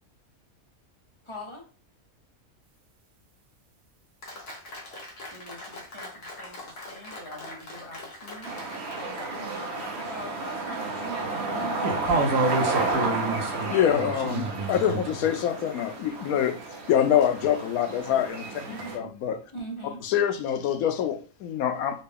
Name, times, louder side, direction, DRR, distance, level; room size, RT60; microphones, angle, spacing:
voice 1, 1.2-1.6 5.3-8.5 8.9-12.2 13.5-14.0 18.6-19.1 19.5-20.0, equal, 30° left, -2 dB, 0.7 m, -42 dB
Applause, 4.2-10.1, left 2 dB, 50° left, 1.2 m, -42 dB
sound 1, 8.4-19.0, right 3 dB, 60° right, 0.8 m, -32 dB
voice 2, 11.8-15.0, right 2 dB, 75° right, 2 dB, 1.2 m, -28 dB
voice 3, 13.7-16.5 16.9-18.5 18.9-19.4 20.0-22.0, left 9 dB, 85° left, 8 dB, 1.0 m, -25 dB
4.1 x 2.2 x 3.4 m, 0.38 s
omnidirectional pair, 1.5 m